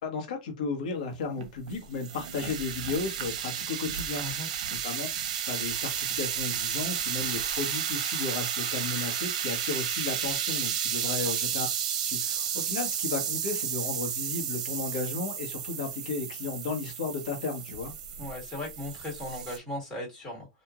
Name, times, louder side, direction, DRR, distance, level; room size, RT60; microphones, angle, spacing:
voice 1, 0.0-5.1 5.5-11.7 12.0-17.9, left 4 dB, 75° left, 1.2 m, -34 dB
sound 1, 1.4-19.6, right 9 dB, 75° right, 0.7 m, -32 dB
voice 2, 11.0-11.3 18.2-20.5, left 1 dB, 15° left, 1.7 m, -38 dB
3.0 x 2.5 x 2.4 m
supercardioid pair, 150°, 4 cm